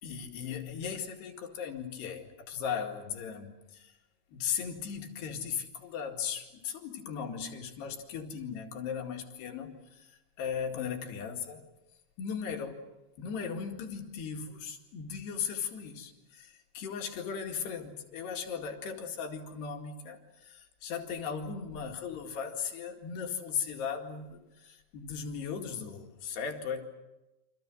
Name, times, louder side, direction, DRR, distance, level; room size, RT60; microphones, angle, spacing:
voice 1, 0.0-3.9 4.3-10.0 10.4-11.7 12.2-12.8 13.2-26.8, left 7 dB, 60° left, 2 dB, 4.0 m, -37 dB
28.5 x 26.5 x 6.3 m, 0.97 s
omnidirectional pair, 5.6 m